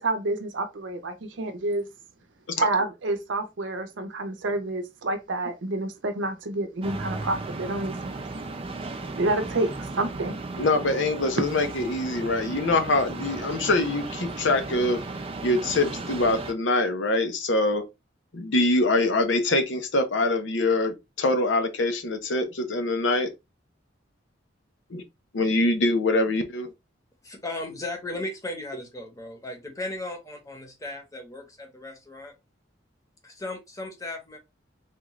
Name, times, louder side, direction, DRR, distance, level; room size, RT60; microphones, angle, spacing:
voice 1, 0.0-1.9 2.6-8.2 9.2-10.4, right 2 dB, 75° right, 0.6 m, -28 dB
sound 1, 6.8-16.5, right 3 dB, 30° right, 0.4 m, -35 dB
voice 2, 10.6-15.0 15.4-17.8 18.3-23.3 24.9-25.0 25.3-26.7, left 2 dB, 75° left, 0.7 m, -24 dB
voice 3, 27.2-32.3 33.2-34.4, left 2 dB, 20° left, 0.9 m, -36 dB
3.6 x 2.4 x 3.0 m
head